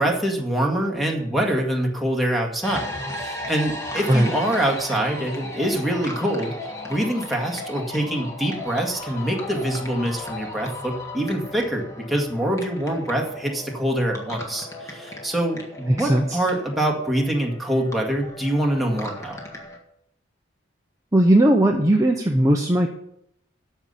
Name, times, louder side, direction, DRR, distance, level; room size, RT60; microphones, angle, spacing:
voice 1, 0.0-6.5 6.8-19.4, right 1 dB, ahead, -1 dB, 1.8 m, -25 dB
sound 1, 2.6-19.8, left 1 dB, 15° left, 1.7 m, -36 dB
voice 2, 15.9-16.4 21.1-22.9, right 1 dB, 15° right, 2 dB, 0.8 m, -18 dB
13.5 x 5.6 x 6.6 m, 0.74 s
head